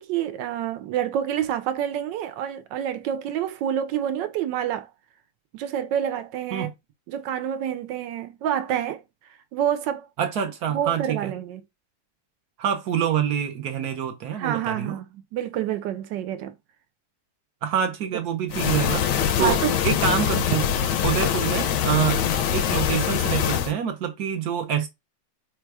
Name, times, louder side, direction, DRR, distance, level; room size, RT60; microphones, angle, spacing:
voice 1, 0.0-4.9 5.5-6.7 7.1-9.0 9.5-10.1 10.7-11.6 14.3-15.0 15.3-16.5 19.4-19.7, right 10 dB, 85° right, 1.3 m, -28 dB
voice 2, 10.2-11.3 12.6-15.0 17.6-20.7 21.0-22.2 22.5-24.9, right 8 dB, 65° right, 1.1 m, -26 dB
sound 1, 18.5-23.7, left 9 dB, 75° left, 1.2 m, -23 dB
4.1 x 2.2 x 4.6 m
omnidirectional pair, 1.9 m